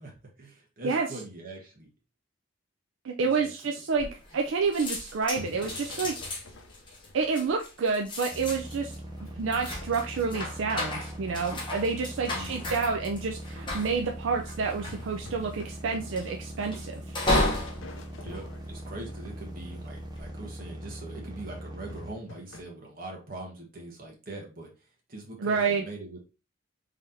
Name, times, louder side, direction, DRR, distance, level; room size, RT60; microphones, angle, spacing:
voice 1, 0.0-1.9 3.2-4.1 12.2-12.7 18.1-26.2, right 2 dB, 45° right, 0 dB, 1.3 m, -43 dB
voice 2, 3.0-6.4 7.1-8.9 9.4-17.0 25.4-25.8, right 5 dB, 75° right, 2 dB, 0.4 m, -29 dB
sound 1, 4.0-4.5 4.7-19.3 19.9-20.3, left 1 dB, 25° left, 0.9 m, -34 dB
sound 2, 5.0-7.8 8.3-8.4 8.9-11.2 14.9-17.0 17.3-19.1 21.9-22.6, left 2 dB, 75° left, 0.6 m, -48 dB
sound 3, 8.3-22.1, equal, 20° right, 0.7 m, -41 dB
3.8 x 3.2 x 2.7 m, 0.31 s
head